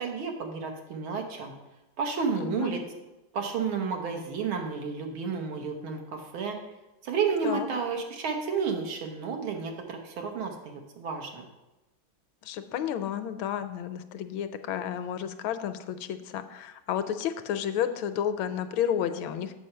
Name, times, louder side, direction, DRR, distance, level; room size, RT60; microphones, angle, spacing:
voice 1, 0.0-1.6 2.0-2.8 3.3-6.6 7.0-11.4, right 5 dB, 80° right, 3 dB, 1.9 m, -31 dB
voice 2, 2.4-2.7 7.4-7.7 12.4-19.5, left 9 dB, 80° left, 10 dB, 1.3 m, -31 dB
7.6 x 4.9 x 6.6 m, 1.0 s
omnidirectional pair, 2.2 m